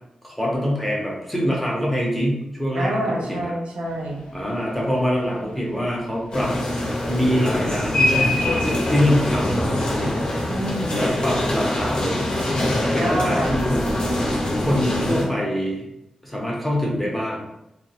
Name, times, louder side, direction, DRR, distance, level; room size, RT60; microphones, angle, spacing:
voice 1, 0.2-2.9 3.3-3.5 4.3-6.5 7.1-10.2 10.9-12.4 12.9-14.3 14.6-15.9 16.2-17.4, equal, 5° left, -3 dB, 0.5 m, -24 dB
voice 2, 2.7-4.3 10.5-11.2 12.9-13.7, right 1 dB, 80° right, -1 dB, 0.6 m, -27 dB
Subway metro underground, 3.8-13.7, left 2 dB, 90° left, 0.4 m, -40 dB
sound 1, 6.3-15.2, left 1 dB, 50° left, 0.6 m, -23 dB
2.8 x 2.0 x 2.7 m, 0.87 s
wide cardioid pair, 180°, 2 cm